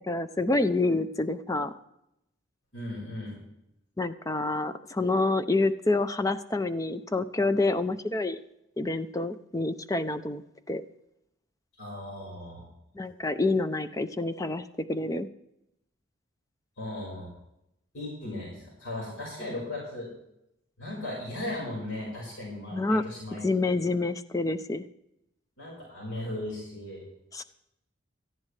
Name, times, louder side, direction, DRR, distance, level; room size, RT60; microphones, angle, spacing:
voice 1, 0.1-1.7 4.0-8.4 8.8-10.4 10.7-10.8 12.9-15.3 22.7-23.0 23.4-24.8 27.3-27.4, left 2 dB, 15° left, 11 dB, 0.6 m, -27 dB
voice 2, 2.7-3.4 11.8-12.6 16.8-17.3 17.9-20.1 20.8-23.4 25.6-27.0, left 1 dB, 85° left, -4 dB, 5.1 m, -37 dB
18.0 x 13.5 x 3.3 m, 0.82 s
head